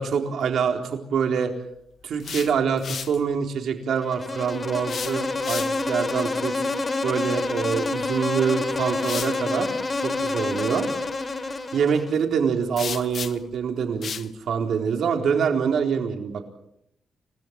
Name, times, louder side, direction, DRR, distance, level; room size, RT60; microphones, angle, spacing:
voice 1, 0.0-1.5 2.0-6.5 7.0-9.7 10.0-10.9 11.7-16.5, right 6 dB, 70° right, 4 dB, 4.1 m, -25 dB
sound 1, 2.0-3.2 4.8-6.0 8.0-8.2 9.0-9.4 12.8-13.5 14.0-14.3, left 7 dB, 50° left, 1.1 m, -34 dB
Insect, 4.0-12.2, left 3 dB, 25° left, 2.6 m, -28 dB
30.0 x 18.5 x 7.7 m, 0.76 s
wide cardioid pair, 165°, 0 cm